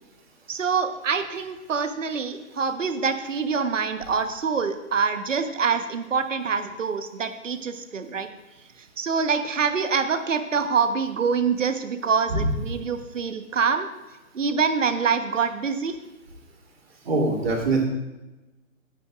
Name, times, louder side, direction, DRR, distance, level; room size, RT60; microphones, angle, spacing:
voice 1, 0.5-8.3 9.0-13.9 14.3-16.0, right 5 dB, 65° right, 8 dB, 1.2 m, -25 dB
voice 2, 17.0-17.8, right 3 dB, 45° right, -2 dB, 3.2 m, -23 dB
18.5 x 9.0 x 2.5 m, 1.1 s
hypercardioid pair, 165°, 41 cm